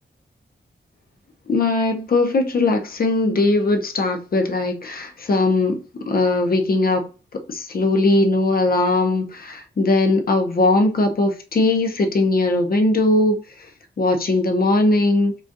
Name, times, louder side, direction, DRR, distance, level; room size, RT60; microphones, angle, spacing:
voice 1, 1.5-5.8 6.1-7.0 7.5-13.4 14.0-15.3, left 2 dB, 50° left, 0.7 m, -19 dB
3.8 x 2.4 x 2.5 m
wide cardioid pair, 100°, 19 cm